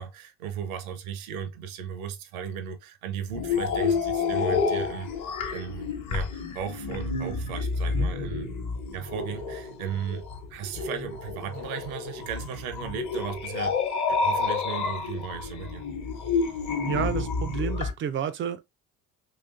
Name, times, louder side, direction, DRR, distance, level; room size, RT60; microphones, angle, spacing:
voice 1, 0.0-8.5 8.9-10.2 10.5-13.8 14.1-15.8, right 8 dB, 75° right, 0.7 m, -36 dB
sound 1, 3.3-17.9, left 4 dB, 45° left, 1.0 m, -29 dB
voice 2, 16.8-18.6, right 8 dB, 30° right, 0.3 m, -30 dB
3.1 x 3.0 x 2.4 m
figure-of-eight pair, 55°, 43 cm